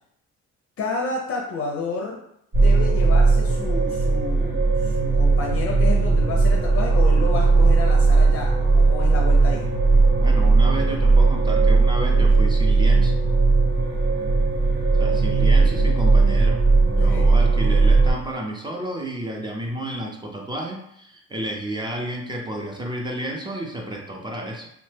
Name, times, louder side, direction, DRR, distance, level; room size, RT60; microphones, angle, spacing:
voice 1, 0.8-2.2 2.6-9.7 17.0-17.3, left 4 dB, 50° left, -1 dB, 0.5 m, -30 dB
sound 1, 2.5-18.1, right 3 dB, 70° right, 1.5 m, -17 dB
voice 2, 10.2-13.1 15.0-24.7, right 1 dB, 15° right, 0 dB, 0.5 m, -31 dB
3.0 x 2.1 x 3.2 m, 0.75 s
cardioid pair, 90°, 30 cm